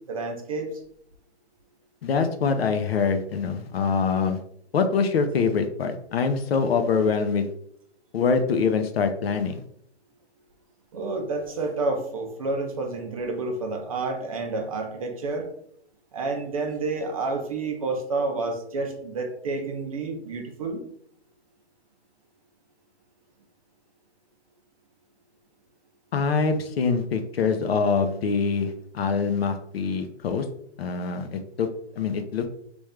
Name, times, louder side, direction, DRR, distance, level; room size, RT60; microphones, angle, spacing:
voice 1, 0.1-0.8 10.9-15.5 16.1-20.8, right 3 dB, 35° right, 3 dB, 0.5 m, -29 dB
voice 2, 2.0-4.4 4.7-7.5 8.1-9.6 26.1-30.5 30.8-31.7 32.0-32.5, left 5 dB, 60° left, 7 dB, 0.6 m, -24 dB
3.2 x 2.6 x 3.3 m, 0.68 s
hypercardioid pair, 155°, 33 cm